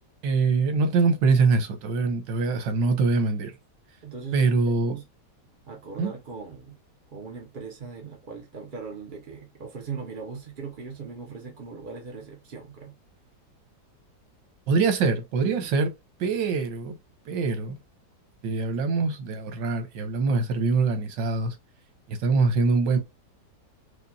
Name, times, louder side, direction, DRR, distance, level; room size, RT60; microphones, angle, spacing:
voice 1, 0.2-3.5 4.3-5.0 6.0-6.1 14.7-15.9 16.2-17.0 17.3-17.8 18.4-21.5 22.1-23.0, right 4 dB, 85° right, 1.5 m, -23 dB
voice 2, 4.0-5.1 5.7-6.8 7.1-12.9 15.4-15.7, right 5 dB, 60° right, 0.5 m, -39 dB
5.0 x 2.2 x 2.7 m
omnidirectional pair, 1.9 m